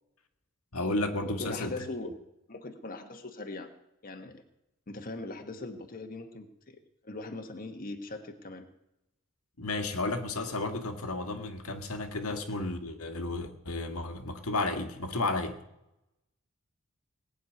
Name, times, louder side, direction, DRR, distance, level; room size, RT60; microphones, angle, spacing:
voice 1, 0.7-1.8 9.6-15.5, left 2 dB, 85° left, 5 dB, 1.7 m, -32 dB
voice 2, 1.2-2.1 2.5-3.7 4.0-4.4 4.9-6.8 7.0-8.7, left 2 dB, 40° left, 5 dB, 1.4 m, -40 dB
19.0 x 6.6 x 9.2 m, 0.88 s
head